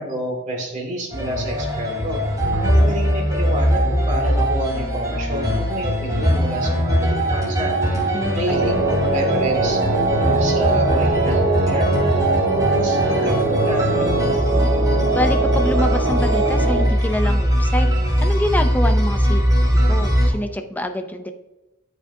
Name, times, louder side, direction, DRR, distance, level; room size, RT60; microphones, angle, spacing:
voice 1, 0.0-2.2 2.5-7.8 8.3-9.8 10.1-11.9 12.4-14.3, equal, 40° right, -1 dB, 2.2 m, -28 dB
sound 1, 1.1-20.3, equal, 20° right, 2.7 m, -20 dB
voice 2, 8.1-8.6 15.1-19.5 19.9-21.3, left 1 dB, 10° left, 7 dB, 0.5 m, -26 dB
sound 2, 8.5-16.8, right 3 dB, 70° right, 1.5 m, -21 dB
12.0 x 5.1 x 2.7 m, 1.0 s
head